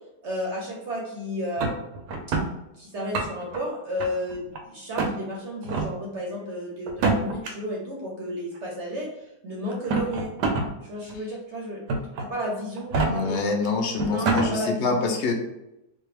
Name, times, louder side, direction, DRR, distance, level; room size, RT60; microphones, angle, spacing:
voice 1, 0.2-2.4 2.8-10.3 10.8-11.8 12.2-13.5 14.0-15.0, equal, 55° right, -2 dB, 0.9 m, -32 dB
sound 1, 1.6-2.5 3.0-3.6 4.0-4.6 5.0-5.1 5.6-5.9 6.9-7.5 8.6-8.7 9.7-10.7 11.1-11.2 11.9-12.3 12.8-13.1 13.7-13.8 14.0-14.5, right 3 dB, 75° right, 1.2 m, -25 dB
voice 2, 13.0-15.3, left 4 dB, 65° left, 2 dB, 0.7 m, -26 dB
4.4 x 2.3 x 3.2 m, 0.90 s
omnidirectional pair, 1.9 m